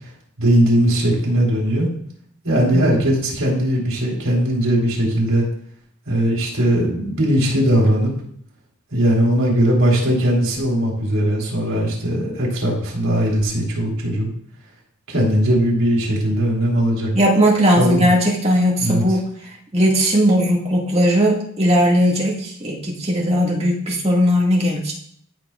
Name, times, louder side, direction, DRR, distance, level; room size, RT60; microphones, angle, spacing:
voice 1, 0.4-1.9 2.4-5.5 6.1-8.1 8.9-14.3 15.1-17.1 17.8-18.1 18.8-19.0, right 1 dB, 70° right, -3 dB, 3.6 m, -19 dB
voice 2, 2.7-3.0 17.1-19.2 19.7-24.9, equal, 30° right, -3 dB, 2.0 m, -18 dB
14.0 x 6.0 x 2.4 m, 0.65 s
head